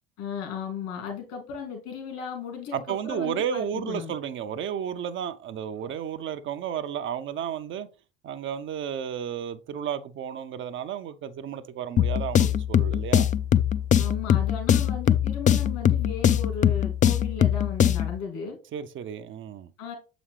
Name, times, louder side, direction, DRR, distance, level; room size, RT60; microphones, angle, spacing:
voice 1, 0.2-4.1 13.9-18.6 19.8-19.9, left 6 dB, 65° left, 2.4 m, -36 dB
voice 2, 2.7-7.9 8.2-13.3 18.7-19.7, right 8 dB, 45° right, 0.6 m, -32 dB
sound 1, 12.0-18.2, left 10 dB, 25° left, 0.4 m, -22 dB
7.1 x 5.0 x 3.2 m
hypercardioid pair, 65°, 29 cm